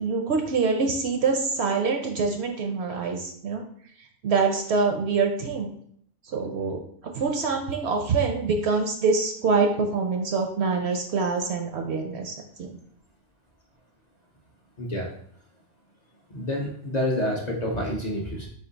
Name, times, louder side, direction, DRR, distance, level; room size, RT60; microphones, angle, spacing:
voice 1, 0.0-3.6 4.2-5.7 6.3-6.8 7.2-12.7, right 4 dB, 65° right, 3 dB, 0.7 m, -25 dB
voice 2, 14.8-15.1 16.3-18.5, left 1 dB, 45° left, -1 dB, 0.6 m, -28 dB
4.3 x 2.6 x 3.9 m, 0.64 s
omnidirectional pair, 1.4 m